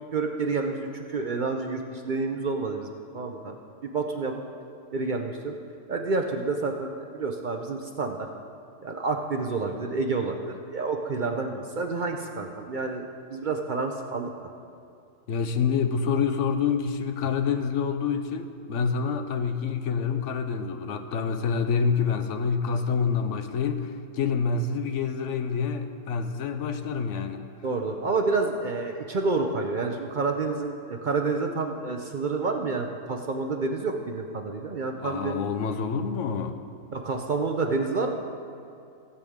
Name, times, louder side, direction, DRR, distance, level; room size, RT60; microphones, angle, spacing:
voice 1, 0.1-2.9 3.1-3.5 3.8-4.4 4.9-5.5 5.9-8.3 8.8-14.3 27.6-35.3 36.9-38.1, right 3 dB, 55° right, 3 dB, 0.5 m, -29 dB
voice 2, 15.3-27.4 35.0-36.6, left 6 dB, 65° left, 8 dB, 0.9 m, -27 dB
16.5 x 8.3 x 3.6 m, 2.5 s
omnidirectional pair, 1.5 m